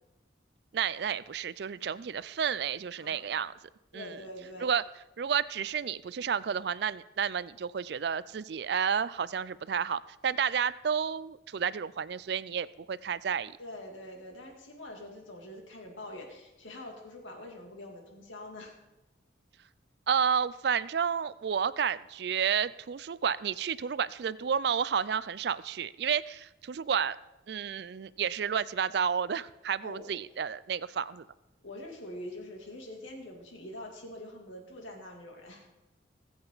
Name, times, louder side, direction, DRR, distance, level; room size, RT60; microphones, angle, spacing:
voice 1, 0.7-3.5 3.9-4.2 4.6-4.8 5.2-13.5 20.1-27.2 27.5-31.2, right 7 dB, 55° right, 18 dB, 0.4 m, -31 dB
voice 2, 3.0-3.3 3.9-4.7 13.6-18.8 29.8-30.1 31.6-35.7, left 1 dB, 90° left, 1 dB, 2.7 m, -44 dB
20.5 x 7.8 x 4.0 m, 0.99 s
head